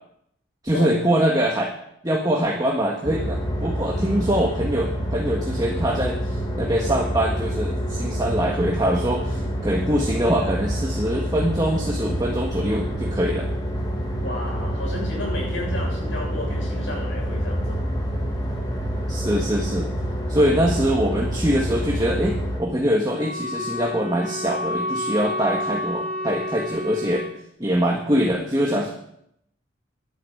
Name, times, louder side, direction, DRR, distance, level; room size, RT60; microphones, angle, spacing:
voice 1, 0.6-1.7 2.0-13.5 19.1-19.9 20.3-27.3 27.6-28.9, equal, 20° right, -1 dB, 1.6 m, -23 dB
sound 1, 3.0-22.6, equal, 20° left, 2.3 m, -27 dB
voice 2, 14.2-17.8 20.4-20.5, left 1 dB, 75° left, -2 dB, 7.3 m, -33 dB
Wind instrument woodwind instrument, 23.0-27.4, left 1 dB, 40° right, 4.1 m, -30 dB
11.5 x 10.5 x 8.0 m, 0.74 s
head